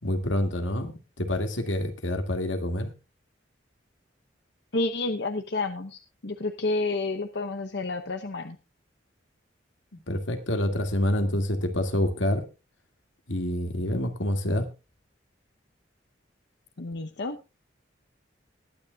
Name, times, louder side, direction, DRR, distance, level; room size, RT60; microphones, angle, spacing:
voice 1, 0.0-2.9 10.1-12.5 13.3-14.7, left 1 dB, 85° left, 7 dB, 2.2 m, -27 dB
voice 2, 4.7-8.6 16.8-17.5, left 2 dB, 60° left, 7 dB, 0.9 m, -30 dB
20.5 x 9.6 x 2.4 m, 0.29 s
head